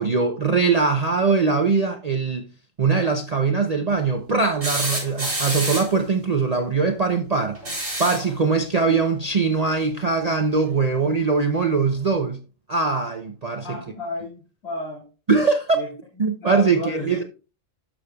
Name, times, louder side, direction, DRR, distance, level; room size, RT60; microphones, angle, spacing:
voice 1, 0.0-2.5 2.8-7.6 8.0-12.4 12.7-13.8 15.3-15.8 16.2-17.2, right 4 dB, 40° right, 0.6 m, -21 dB
sound 1, 4.6-6.0 7.5-8.3 10.0-10.1 11.5-11.6, right 1 dB, 60° right, 4.9 m, -28 dB
voice 2, 13.6-15.1 15.7-15.9 16.4-17.2, left 2 dB, 50° left, 2.5 m, -32 dB
12.5 x 6.5 x 2.3 m
omnidirectional pair, 1.3 m